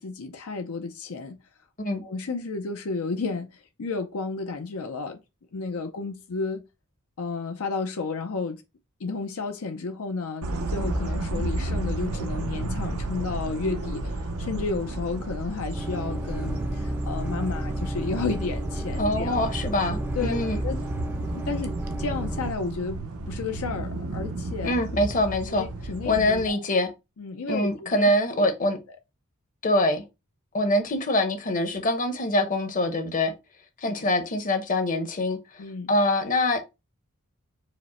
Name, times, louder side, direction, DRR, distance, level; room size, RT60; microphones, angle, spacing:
voice 1, 0.0-1.4 2.0-5.2 5.5-6.6 7.2-8.6 9.0-19.4 20.1-20.8 21.3-24.8 25.5-26.6 27.2-28.0 28.3-28.5 33.9-34.1 35.6-35.9, left 4 dB, 70° left, 0.6 m, -32 dB
sound 1, 10.4-26.5, right 2 dB, 85° right, 0.7 m, -33 dB
sound 2, 15.7-22.5, right 1 dB, 10° right, 0.3 m, -32 dB
voice 2, 19.0-20.6 24.6-25.7 26.0-26.9 27.5-28.8 29.6-30.0 30.5-33.3 33.8-35.6 35.9-36.6, left 1 dB, 40° left, 0.8 m, -24 dB
5.0 x 2.1 x 4.2 m
head